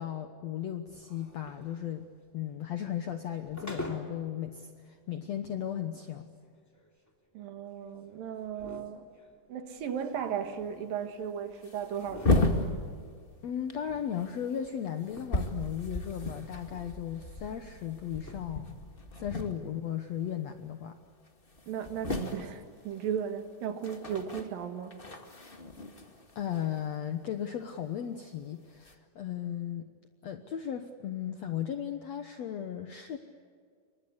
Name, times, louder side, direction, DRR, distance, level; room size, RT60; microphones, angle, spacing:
voice 1, 0.0-2.1 2.3-6.3 13.4-18.7 19.2-21.0 26.4-29.9 30.2-33.2, left 9 dB, 65° left, 1.9 m, -36 dB
sound 1, 0.9-4.3 4.7-4.8 5.4-5.5 6.0-11.5 11.8-13.2 13.6-15.6 15.9-17.0 17.4-17.5 17.8-17.9 18.2-18.7, equal, 5° left, 2.3 m, -48 dB
voice 2, 7.4-9.1 9.5-12.7 21.7-25.1, right 8 dB, 70° right, 3.5 m, -36 dB
sound 2, 9.8-10.0 10.2-10.3 11.0-11.2 11.5-13.4 13.7-20.0 20.2-20.6 21.0-21.1 21.2-27.6 28.4-28.9, left 2 dB, 25° left, 1.2 m, -35 dB
29.0 x 24.5 x 8.2 m
omnidirectional pair, 4.2 m